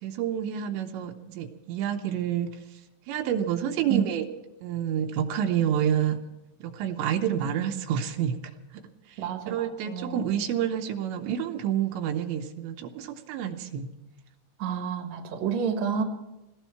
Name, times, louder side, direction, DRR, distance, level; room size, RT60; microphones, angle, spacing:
voice 1, 0.0-2.6 3.1-4.3 4.6-6.2 6.6-8.4 8.7-8.8 9.1-13.9, right 9 dB, 80° right, 5 dB, 3.0 m, -28 dB
voice 2, 9.2-10.5 14.6-16.0, right 7 dB, 55° right, 5 dB, 2.0 m, -30 dB
19.0 x 16.5 x 4.6 m, 0.97 s
omnidirectional pair, 5.3 m